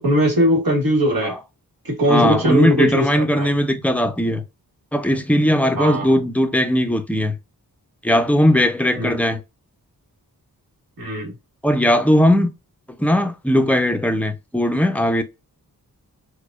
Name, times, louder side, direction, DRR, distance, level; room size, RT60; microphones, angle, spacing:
voice 1, 0.0-1.4 1.8-3.5 5.7-6.2 8.9-9.1 11.0-11.3, equal, 65° right, 1.4 m, -20 dB
voice 2, 2.1-4.4 4.9-7.3 8.0-9.4 11.6-12.5 13.0-15.2, equal, 5° left, 0.4 m, -18 dB
4.6 x 2.1 x 2.4 m
wide cardioid pair, 115°, 37 cm